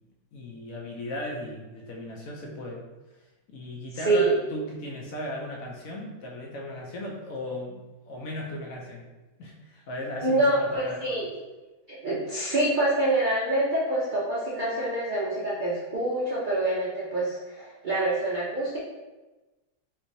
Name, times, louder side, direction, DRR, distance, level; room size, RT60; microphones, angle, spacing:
voice 1, 0.3-3.2 3.5-9.1 9.4-11.2, left 1 dB, 70° left, -1 dB, 0.9 m, -37 dB
voice 2, 10.2-11.3 12.0-18.8, right 2 dB, 70° right, -7 dB, 0.4 m, -26 dB
3.2 x 3.1 x 2.6 m, 1.1 s
omnidirectional pair, 1.7 m